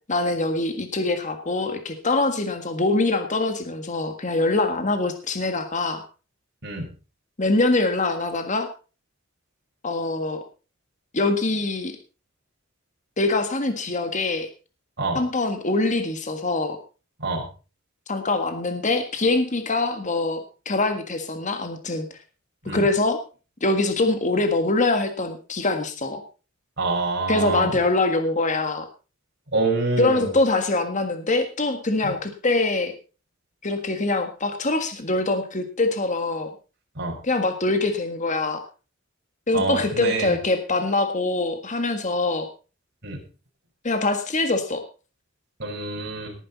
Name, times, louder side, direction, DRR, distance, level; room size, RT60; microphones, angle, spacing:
voice 1, 0.1-6.0 7.4-8.7 9.8-10.4 11.1-12.0 13.2-14.5 15.1-16.8 18.1-22.1 22.7-23.2 23.6-26.2 27.3-28.9 30.0-32.9 33.6-36.5 37.2-38.6 39.5-42.5 43.8-44.8, left 2 dB, 35° left, 7 dB, 1.7 m, -24 dB
voice 2, 26.8-27.7 29.5-30.3 32.0-32.1 37.0-37.1 39.5-40.4 43.0-43.2 45.6-46.3, right 3 dB, 55° right, 0 dB, 5.4 m, -26 dB
18.5 x 10.0 x 4.1 m, 0.35 s
head